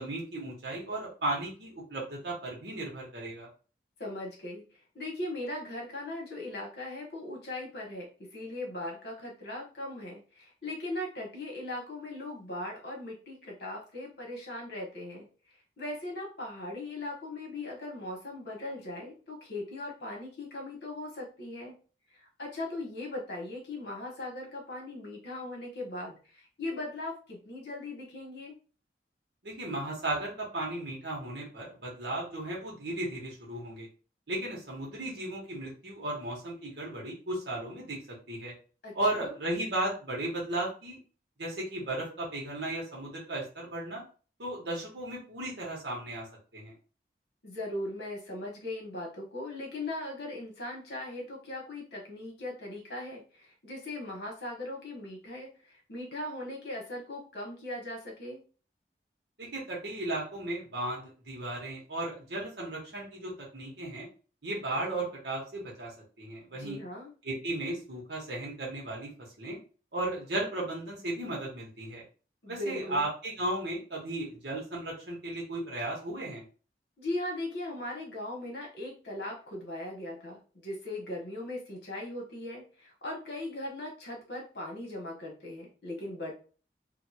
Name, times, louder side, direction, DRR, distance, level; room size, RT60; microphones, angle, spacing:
voice 1, 0.0-3.5 29.4-33.9 34.3-38.5 38.9-41.0 41.4-44.0 44.4-46.7 59.4-64.1 64.4-65.9 66.2-66.8 67.2-69.6 69.9-72.0 72.5-76.4, right 1 dB, 75° right, -4 dB, 1.2 m, -35 dB
voice 2, 4.0-4.6 4.9-15.3 15.8-21.7 22.1-28.6 38.8-39.3 47.4-58.4 66.5-67.1 72.4-73.1 77.0-86.3, left 1 dB, 70° left, -1 dB, 1.2 m, -39 dB
2.7 x 2.6 x 2.8 m, 0.37 s
head